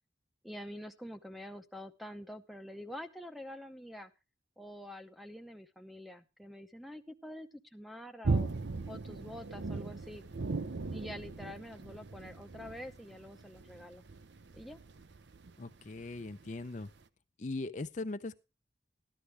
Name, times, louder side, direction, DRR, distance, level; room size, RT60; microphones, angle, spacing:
voice 1, 0.4-4.1 4.6-8.5 8.9-10.2 10.9-14.0 14.5-14.8, left 1 dB, ahead, 9 dB, 0.7 m, -46 dB
sound 1, 8.2-16.6 16.8-17.0, right 3 dB, 75° right, 0.7 m, -38 dB
voice 2, 15.6-16.9 17.4-18.4, left 2 dB, 40° left, 10 dB, 0.5 m, -39 dB
14.0 x 11.5 x 3.3 m, 0.29 s
head